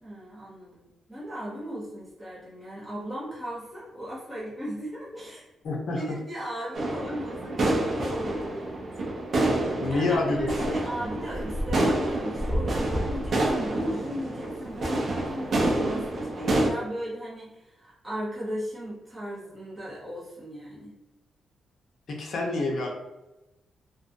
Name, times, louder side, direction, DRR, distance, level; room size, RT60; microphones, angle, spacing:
voice 1, 0.0-9.2 9.9-20.9, equal, 5° right, -8 dB, 0.7 m, -37 dB
voice 2, 5.6-6.0 9.8-10.8 22.1-22.9, left 2 dB, 60° left, 0 dB, 0.6 m, -27 dB
sound 1, 6.7-16.7, right 1 dB, 45° right, 0.5 m, -27 dB
2.5 x 2.2 x 2.5 m, 0.97 s
wide cardioid pair, 145°, 0 cm